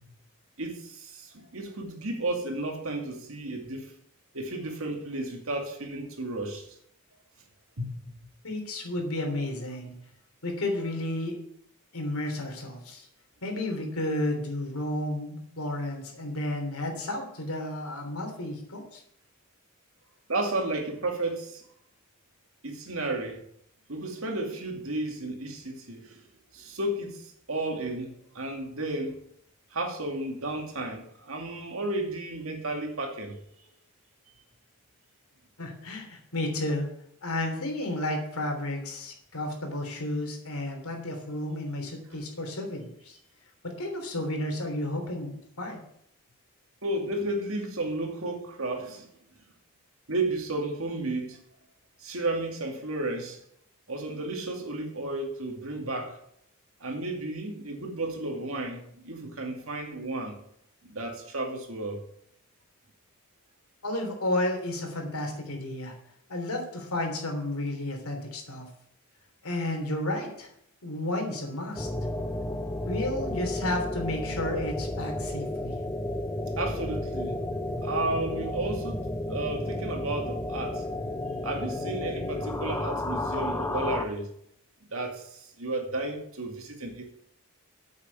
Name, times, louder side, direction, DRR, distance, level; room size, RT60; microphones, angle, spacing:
voice 1, 0.6-3.9 4.3-6.7 7.8-8.2 20.3-21.6 22.6-23.4 23.9-26.2 26.5-29.2 29.7-33.4 42.1-42.2 46.8-49.1 50.1-51.4 52.0-53.4 53.9-56.2 56.8-60.4 60.8-62.0 76.6-77.5 77.8-80.9 81.4-84.3 84.9-87.1, right 2 dB, 65° right, 2.2 m, -33 dB
voice 2, 8.4-9.9 10.4-11.4 11.9-13.1 13.4-19.0 35.6-36.9 37.2-43.2 43.6-45.8 63.8-66.0 66.3-68.7 69.4-70.5 70.8-71.9 72.8-75.8, left 1 dB, 80° left, 3.2 m, -32 dB
sound 1, 71.8-84.1, left 1 dB, 15° left, 0.7 m, -32 dB
8.5 x 6.6 x 8.4 m
head